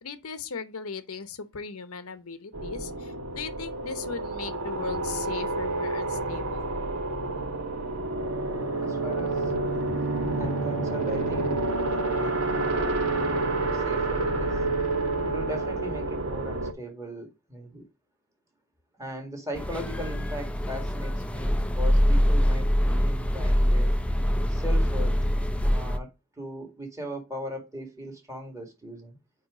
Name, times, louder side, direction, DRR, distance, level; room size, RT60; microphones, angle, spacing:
voice 1, 0.0-6.8, left 5 dB, 70° left, 0.9 m, -38 dB
sound 1, 2.5-16.7, right 2 dB, 75° right, 1.4 m, -29 dB
voice 2, 8.8-14.6 15.2-17.9 19.0-23.9 24.5-25.3 25.6-29.2, equal, 15° right, 2.0 m, -39 dB
sound 2, 19.5-26.0, equal, 5° left, 0.5 m, -24 dB
8.9 x 3.0 x 4.9 m
head